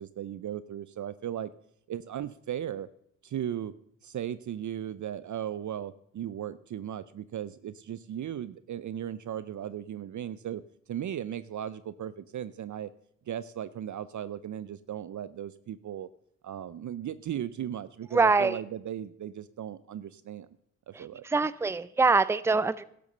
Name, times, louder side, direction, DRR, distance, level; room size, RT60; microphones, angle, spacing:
voice 1, 0.0-1.5 1.9-2.9 3.2-3.7 4.0-10.6 10.9-12.9 13.3-16.1 16.4-20.5 20.9-21.2, right 10 dB, 55° right, 16 dB, 0.5 m, -36 dB
voice 2, 18.1-18.6 20.9-22.8, right 4 dB, 5° right, 18 dB, 0.5 m, -24 dB
12.0 x 7.0 x 6.6 m, 0.71 s
cardioid pair, 55°, 36 cm